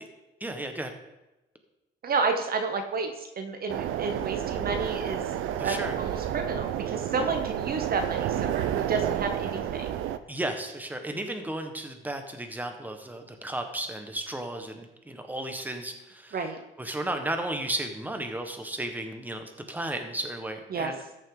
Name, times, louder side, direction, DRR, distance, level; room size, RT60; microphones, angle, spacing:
voice 1, 0.4-0.9 5.6-6.0 7.2-7.3 10.3-16.4 16.8-21.0, right 1 dB, 10° right, 5 dB, 1.4 m, -34 dB
voice 2, 2.0-5.2 5.6-9.9 16.3-16.6 20.7-20.9, right 4 dB, 50° right, 6 dB, 0.9 m, -31 dB
sound 1, 3.7-10.2, right 11 dB, 90° right, 0.6 m, -30 dB
14.0 x 6.5 x 3.9 m, 0.99 s
cardioid pair, 90°, 20 cm